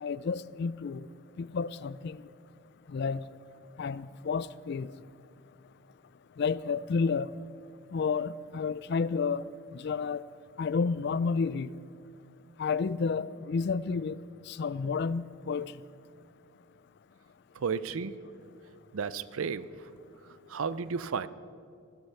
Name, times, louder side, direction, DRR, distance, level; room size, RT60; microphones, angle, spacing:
voice 1, 0.0-1.0 1.4-2.2 2.9-3.2 3.8-4.9 6.4-7.3 7.9-9.4 9.8-10.2 10.6-11.7 12.6-14.2 14.5-15.7, left 5 dB, 50° left, 18 dB, 0.3 m, -30 dB
voice 2, 17.5-18.2 18.9-19.9 20.5-21.3, right 5 dB, 75° right, 16 dB, 0.5 m, -33 dB
14.5 x 12.0 x 5.6 m, 2.4 s
head